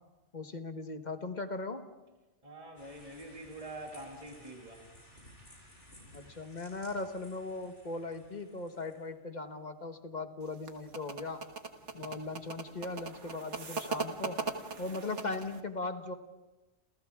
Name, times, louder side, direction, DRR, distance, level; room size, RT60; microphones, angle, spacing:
voice 1, 0.3-1.9 6.1-11.5 11.9-14.4 14.8-16.1, left 3 dB, 40° left, 7 dB, 1.4 m, -39 dB
voice 2, 2.4-4.8 11.9-12.1, right 1 dB, 30° right, 0 dB, 2.6 m, -46 dB
sound 1, 2.8-9.1, equal, 80° left, 7.3 m, -57 dB
sound 2, 10.4-15.6, right 4 dB, 80° right, 1.9 m, -39 dB
29.0 x 28.5 x 3.6 m, 1.1 s
omnidirectional pair, 1.2 m